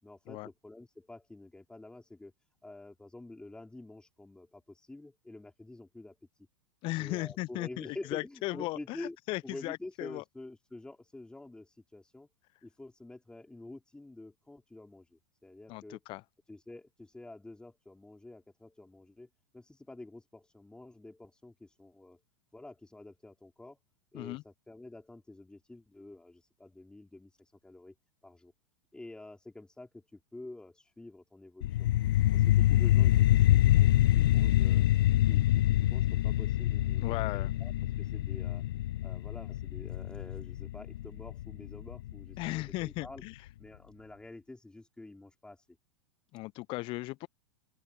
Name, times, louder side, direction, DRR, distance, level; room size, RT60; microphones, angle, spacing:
voice 1, 0.0-2.3 2.6-6.2 7.0-9.2 9.4-12.3 12.6-16.0 16.5-19.3 19.5-22.2 22.5-23.8 24.1-27.9 28.2-28.5 28.9-31.9 32.3-34.9 35.2-37.7 38.0-38.6 39.0-43.2 43.6-45.7, left 2 dB, 5° left, 5.4 m, -48 dB
voice 2, 6.8-10.2 15.7-16.2 24.1-24.4 37.0-37.5 42.4-43.3 46.3-47.3, left 21 dB, 35° left, 1.1 m, -37 dB
sound 1, 31.6-42.6, left 14 dB, 55° left, 0.4 m, -26 dB
open air
figure-of-eight pair, 95°, 15 cm